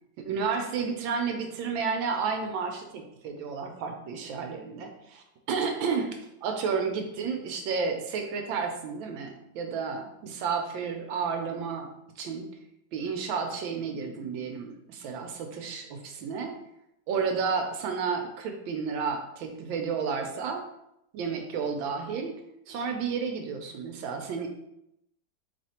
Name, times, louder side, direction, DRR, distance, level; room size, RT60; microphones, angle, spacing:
voice 1, 0.2-11.9 12.2-12.5 12.9-16.6 17.1-20.6 21.1-22.3 22.7-24.5, right 5 dB, 80° right, 4 dB, 1.3 m, -31 dB
4.1 x 3.0 x 4.2 m, 0.82 s
omnidirectional pair, 2.2 m